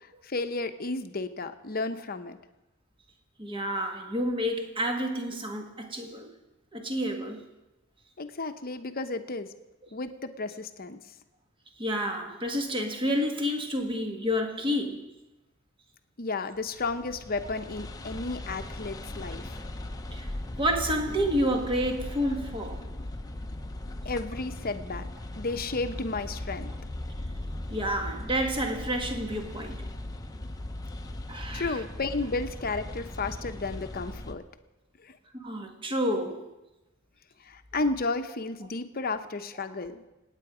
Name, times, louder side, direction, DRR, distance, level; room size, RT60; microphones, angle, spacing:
voice 1, 0.2-2.4 8.2-9.5 9.9-11.0 16.2-19.6 24.0-25.0 25.4-26.7 31.5-34.4 35.0-35.1 37.5-40.0, left 3 dB, 45° left, 0.9 m, -33 dB
voice 2, 3.4-6.3 6.7-7.4 11.8-15.1 20.1-20.3 20.6-22.9 27.7-29.8 31.3-31.8 35.4-36.5 39.6-39.7, equal, 25° right, 1.6 m, -29 dB
sound 1, 16.6-34.4, left 1 dB, 15° left, 0.8 m, -38 dB
27.5 x 9.3 x 5.0 m
head